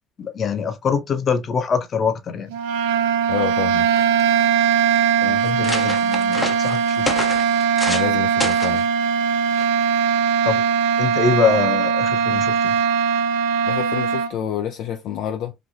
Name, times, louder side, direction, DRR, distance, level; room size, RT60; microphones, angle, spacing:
voice 1, 0.2-2.5 5.2-7.1 10.4-10.6 11.0-12.7, left 5 dB, 45° left, 0.8 m, -24 dB
sound 1, 2.5-14.3, right 7 dB, 80° right, 0.3 m, -20 dB
voice 2, 3.3-3.9 7.9-8.9 13.7-15.5, left 10 dB, 65° left, 0.4 m, -28 dB
sound 2, 3.5-3.6 3.9-4.5 5.1-5.2 5.4-8.1 8.4-8.8 9.6-9.9, left 2 dB, 15° left, 0.6 m, -29 dB
3.2 x 2.6 x 2.5 m
hypercardioid pair, 75°, 0 cm